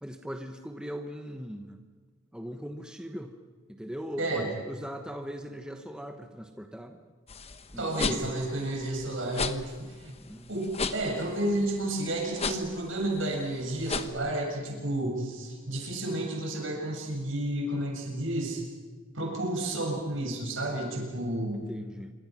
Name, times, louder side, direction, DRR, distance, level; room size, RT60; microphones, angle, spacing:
voice 1, 0.0-1.8 2.3-3.4 3.7-7.0 7.7-8.3 10.2-10.5 21.7-22.1, equal, 5° right, 5 dB, 1.1 m, -40 dB
voice 2, 4.2-4.5 7.8-10.1 10.5-18.6 19.1-21.6, right 1 dB, 70° right, 1 dB, 7.2 m, -31 dB
sound 1, 7.3-14.1, left 4 dB, 30° left, 1.0 m, -35 dB
26.5 x 24.5 x 6.1 m, 1.5 s
head